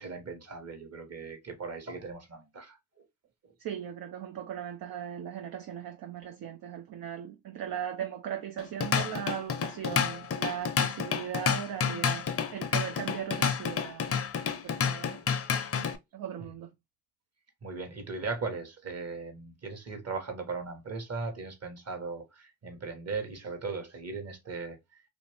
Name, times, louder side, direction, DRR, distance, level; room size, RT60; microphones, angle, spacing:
voice 1, 0.0-2.8 3.4-3.5 17.6-24.8, right 4 dB, 35° right, 1.2 m, -38 dB
voice 2, 3.6-15.5 16.1-16.7, right 9 dB, 55° right, 0.5 m, -38 dB
Drum kit / Drum, 8.6-16.0, left 7 dB, 35° left, 0.6 m, -30 dB
2.6 x 2.5 x 3.2 m
supercardioid pair, 55°, 41 cm